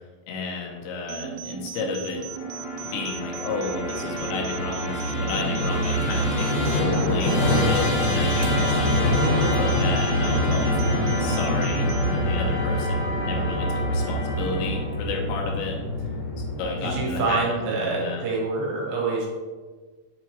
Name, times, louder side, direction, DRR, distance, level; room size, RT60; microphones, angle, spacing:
voice 1, 0.3-2.2 2.8-6.5 6.8-9.0 9.4-17.4 17.7-18.2, left 4 dB, 80° left, 0 dB, 2.9 m, -32 dB
sound 1, 1.1-12.1, right 9 dB, 85° right, 3.0 m, -37 dB
Musical instrument, 2.3-17.6, left 1 dB, 55° left, 2.0 m, -25 dB
voice 2, 8.5-8.9 16.8-19.3, right 3 dB, 70° right, -4 dB, 3.2 m, -27 dB
7.1 x 4.8 x 3.0 m, 1.4 s
omnidirectional pair, 5.4 m